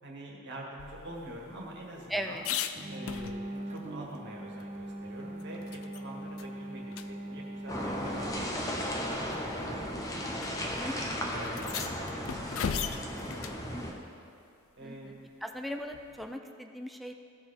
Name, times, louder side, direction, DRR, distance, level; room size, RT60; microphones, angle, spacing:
voice 1, 0.0-2.5 2.9-10.2 10.8-11.0 11.3-11.7 12.0-13.0 13.3-14.0 14.8-15.3, right 1 dB, 55° right, -2 dB, 1.8 m, -46 dB
sound 1, 0.8-3.8 4.1-4.2 4.6-6.0 6.4-6.5 6.9-7.1 8.1-8.2 9.1-9.4 10.4-10.5 10.8-10.9 11.4-13.6 15.9-16.4, left 8 dB, 65° left, 0.4 m, -38 dB
voice 2, 2.1-2.4 10.8-10.9 14.8-15.1 15.4-17.1, equal, ahead, 5 dB, 0.4 m, -38 dB
sound 2, 2.8-13.6, right 1 dB, 30° right, 0.9 m, -43 dB
sound 3, 7.7-13.9, equal, 15° left, 0.9 m, -35 dB
16.0 x 5.6 x 4.4 m, 2.4 s
head